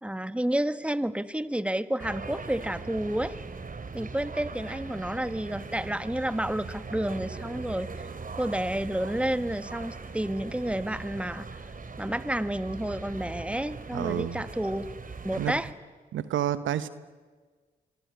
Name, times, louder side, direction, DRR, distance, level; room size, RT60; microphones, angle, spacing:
voice 1, 0.0-3.3 3.9-8.1 8.3-11.6 12.0-14.8 15.2-15.7, right 1 dB, 5° right, 12 dB, 1.7 m, -30 dB
sound 1, 2.0-15.7, right 4 dB, 45° right, 2.8 m, -40 dB
voice 2, 13.9-14.4 15.4-15.5 16.1-16.9, right 11 dB, 80° right, 14 dB, 1.1 m, -29 dB
25.0 x 24.0 x 9.8 m, 1.5 s
supercardioid pair, 45°, 20 cm